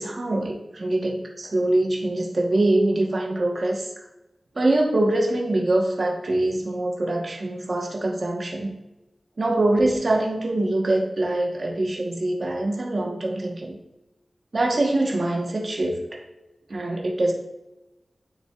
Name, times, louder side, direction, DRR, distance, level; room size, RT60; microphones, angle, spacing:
voice 1, 0.0-3.9 4.5-8.8 9.4-13.8 14.5-16.2 16.7-17.3, right 2 dB, 55° right, -1 dB, 1.1 m, -24 dB
9.4 x 6.4 x 2.3 m, 0.96 s
wide cardioid pair, 90°, 0 cm